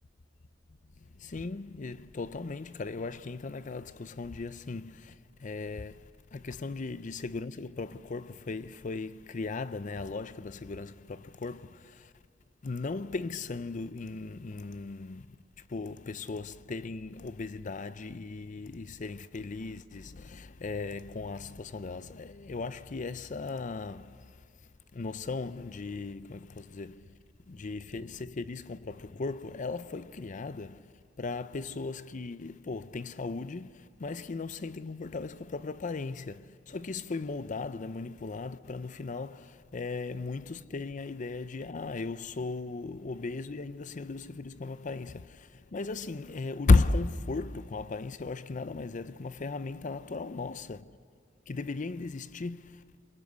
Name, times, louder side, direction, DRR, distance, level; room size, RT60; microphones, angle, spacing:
voice 1, 1.2-12.1 12.6-15.4 15.7-24.3 24.9-27.1 27.5-51.0 51.5-53.0, left 3 dB, 45° left, 0.5 m, -35 dB
23.5 x 23.0 x 8.0 m
head